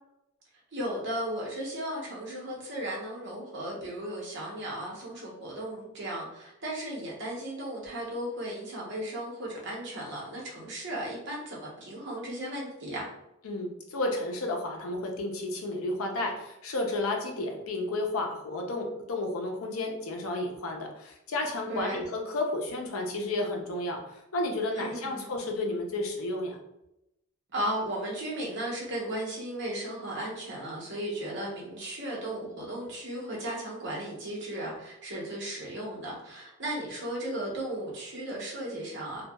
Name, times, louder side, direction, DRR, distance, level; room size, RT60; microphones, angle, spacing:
voice 1, 0.7-13.1 21.7-22.0 24.7-25.3 27.5-39.2, right 1 dB, 60° right, -3 dB, 0.8 m, -35 dB
voice 2, 13.4-26.6, left 2 dB, 90° left, 2 dB, 0.5 m, -32 dB
2.7 x 2.2 x 2.2 m, 0.86 s
head